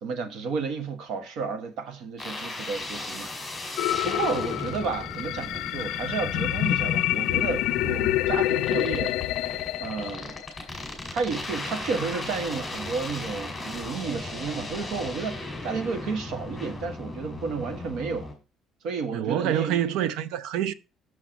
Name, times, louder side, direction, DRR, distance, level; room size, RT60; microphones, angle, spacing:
voice 1, 0.0-3.3 3.6-9.2 9.8-10.3 11.1-18.3 18.8-19.8, right 5 dB, 65° right, 1.2 m, -32 dB
sound 1, 2.2-18.3, left 2 dB, 5° left, 2.4 m, -36 dB
sound 2, 3.8-10.8, left 14 dB, 70° left, 0.4 m, -27 dB
voice 2, 19.1-20.7, right 10 dB, 85° right, 0.5 m, -26 dB
6.4 x 6.0 x 5.0 m
cardioid pair, 165°, 0 cm